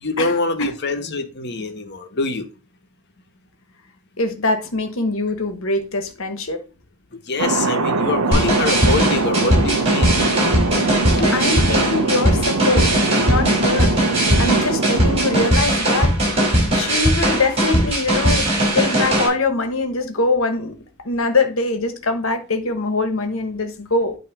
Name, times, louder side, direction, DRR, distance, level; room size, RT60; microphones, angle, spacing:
voice 1, 0.0-2.4 7.3-10.1 11.2-11.5, left 3 dB, 50° left, 1.0 m, -24 dB
voice 2, 4.2-6.6 11.3-12.9 13.3-13.9 14.4-16.3 16.7-20.8 21.0-24.1, left 3 dB, 70° left, 1.1 m, -23 dB
Thunder, 7.4-15.5, right 3 dB, 85° right, 0.8 m, -22 dB
sound 1, 8.3-19.3, right 1 dB, 30° right, 4.1 m, -19 dB
8.8 x 3.0 x 5.8 m
head